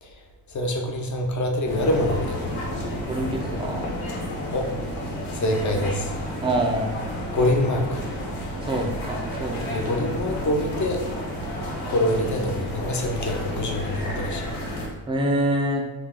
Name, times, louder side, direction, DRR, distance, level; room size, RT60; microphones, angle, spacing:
voice 1, 0.0-2.5 4.5-4.7 5.3-6.1 7.3-8.1 9.7-11.0 11.9-14.5, left 1 dB, 40° left, 2 dB, 0.6 m, -25 dB
sound 1, 1.7-14.9, equal, 85° left, 1.0 m, -31 dB
voice 2, 3.1-3.8 6.4-7.0 8.6-9.9 15.1-15.8, right 1 dB, 10° right, 1 dB, 0.4 m, -26 dB
3.5 x 2.3 x 3.6 m, 1.1 s
cardioid pair, 95°, 47 cm